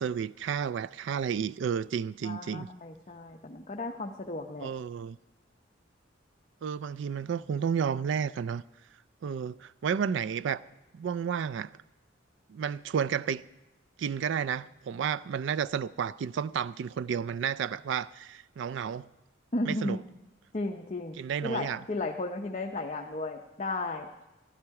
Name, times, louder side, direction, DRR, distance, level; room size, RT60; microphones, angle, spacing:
voice 1, 0.0-2.7 4.6-5.2 6.6-8.6 9.2-10.6 10.9-11.7 12.5-13.4 14.0-19.1 19.7-20.0 21.2-21.8, right 7 dB, 65° right, 0.3 m, -31 dB
voice 2, 2.2-4.7 19.5-20.0 20.5-21.2 21.4-24.3, left 2 dB, 35° left, 0.7 m, -34 dB
15.0 x 12.0 x 4.7 m
head